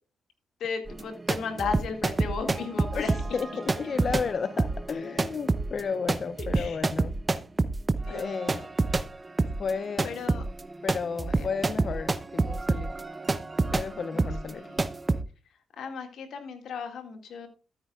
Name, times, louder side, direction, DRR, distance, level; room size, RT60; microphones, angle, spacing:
voice 1, 0.6-3.1 6.5-6.9 8.0-8.6 10.0-10.4 11.3-11.5 14.1-14.3 14.5-14.8 15.8-17.5, left 5 dB, 75° left, 2.0 m, -35 dB
sound 1, 0.9-9.1 9.4-15.2, right 3 dB, 30° right, 0.7 m, -28 dB
voice 2, 2.9-7.1 8.1-8.6 9.6-10.1 10.8-12.9 13.7-14.7, left 5 dB, 55° left, 0.5 m, -33 dB
13.5 x 9.1 x 2.4 m
cardioid pair, 70°, 0 cm